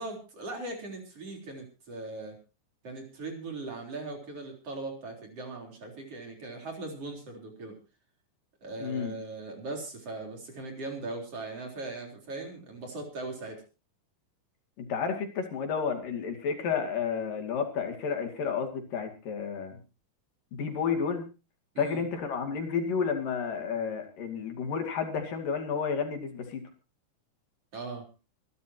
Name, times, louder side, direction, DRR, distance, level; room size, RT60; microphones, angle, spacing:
voice 1, 0.0-2.4 2.8-7.8 8.6-13.6 21.7-22.0 27.7-28.1, right 2 dB, 45° right, 2 dB, 4.7 m, -39 dB
voice 2, 8.8-9.2 14.8-19.8 20.5-21.2 21.8-26.6, left 6 dB, 80° left, 5 dB, 4.2 m, -31 dB
26.5 x 12.5 x 2.9 m, 0.30 s
omnidirectional pair, 3.9 m